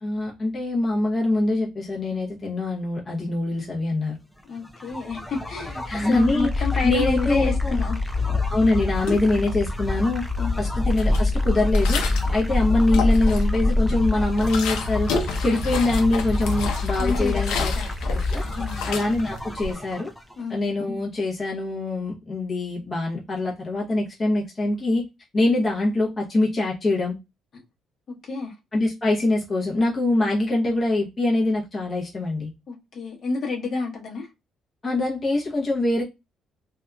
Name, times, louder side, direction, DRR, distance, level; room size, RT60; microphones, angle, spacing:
voice 1, 0.0-4.2 5.9-7.8 8.5-10.2 10.6-12.0 12.3-15.1 15.4-17.7 18.1-18.4 18.8-20.1 20.5-25.0 25.3-27.2 28.7-32.5 34.8-36.0, left 2 dB, 30° left, 0.8 m, -24 dB
voice 2, 4.5-8.0 10.4-10.5 12.3-12.4 17.0-17.5 17.7-18.1 18.4-18.9 20.4-20.6 27.5-27.6 28.1-28.5 32.7-34.3, left 4 dB, 50° left, 1.0 m, -30 dB
sound 1, 4.6-20.3, left 2 dB, 5° left, 0.5 m, -26 dB
sound 2, 9.0-9.8 10.2-12.4 12.8-13.7 14.0-19.7, left 4 dB, 85° left, 0.6 m, -32 dB
2.7 x 2.3 x 2.2 m
cardioid pair, 100°, 0 cm